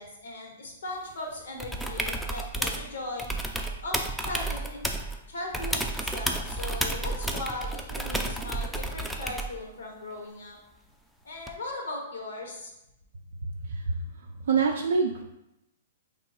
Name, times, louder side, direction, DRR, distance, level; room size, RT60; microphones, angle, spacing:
voice 1, 0.0-3.3 3.8-4.8 5.3-10.6 11.2-12.7, left 2 dB, 80° left, 0 dB, 1.0 m, -38 dB
sound 1, 1.6-2.9 3.2-5.2 5.5-9.6 11.5-11.6, right 1 dB, ahead, 0.3 m, -31 dB
voice 2, 13.6-15.2, right 5 dB, 80° right, 1 dB, 0.3 m, -27 dB
3.0 x 2.3 x 4.1 m, 0.88 s
hypercardioid pair, 135°, 0 cm